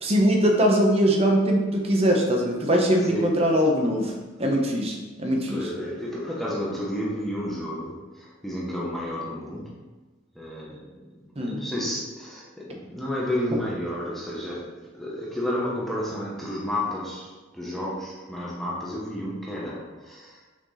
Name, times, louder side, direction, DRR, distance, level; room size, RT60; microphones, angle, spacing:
voice 1, 0.0-4.1 4.4-5.7 11.4-11.6, equal, 30° right, 0 dB, 1.0 m, -22 dB
voice 2, 3.1-3.4 5.5-9.8 10.3-20.4, left 1 dB, ahead, -6 dB, 0.9 m, -31 dB
6.1 x 4.3 x 4.1 m, 1.2 s
head